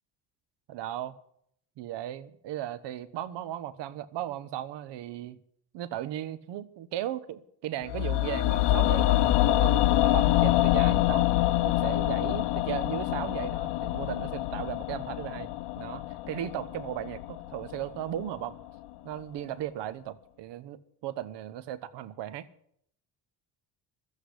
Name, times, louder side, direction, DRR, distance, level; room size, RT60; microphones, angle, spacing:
voice 1, 0.7-1.1 1.8-5.4 5.7-9.2 9.5-11.3 11.6-15.5 15.8-18.6 19.0-22.5, right 12 dB, 70° right, 17 dB, 1.1 m, -36 dB
sound 1, 7.9-18.0 18.3-18.4, left 15 dB, 70° left, 0.9 m, -26 dB
13.5 x 8.4 x 10.0 m, 0.69 s
cardioid pair, 100°, 43 cm